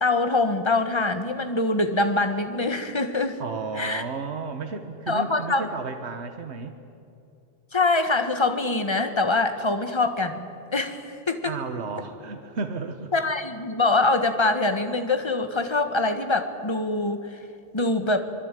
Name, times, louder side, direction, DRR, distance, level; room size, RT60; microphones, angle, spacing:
voice 1, 0.0-3.4 3.8-4.0 5.1-5.7 7.7-11.5 13.1-17.3 17.7-18.2, left 2 dB, 25° left, 7 dB, 1.6 m, -24 dB
voice 2, 3.4-6.8 11.4-13.1, right 4 dB, 75° right, 7 dB, 1.5 m, -33 dB
25.0 x 22.0 x 9.1 m, 2.7 s
omnidirectional pair, 1.1 m